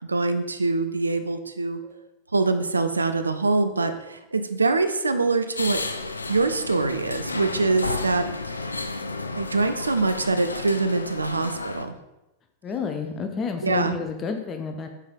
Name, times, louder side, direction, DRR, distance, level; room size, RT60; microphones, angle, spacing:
voice 1, 0.0-1.8 2.3-5.8 6.3-8.6 9.3-11.9 13.6-14.0, right 3 dB, 85° right, 9 dB, 0.6 m, -24 dB
sound 1, 1.8-1.9 2.8-2.9 3.8-3.9 4.8-4.9 5.8-5.9 6.5-6.6 7.0-7.1 7.5-10.7, left 6 dB, 30° right, 2.9 m, -49 dB
sound 2, 5.6-11.8, left 3 dB, 85° left, 0.5 m, -32 dB
voice 2, 12.6-14.9, left 5 dB, 30° left, 5 dB, 0.9 m, -30 dB
6.6 x 5.1 x 5.2 m, 0.96 s
figure-of-eight pair, 90°, 0 cm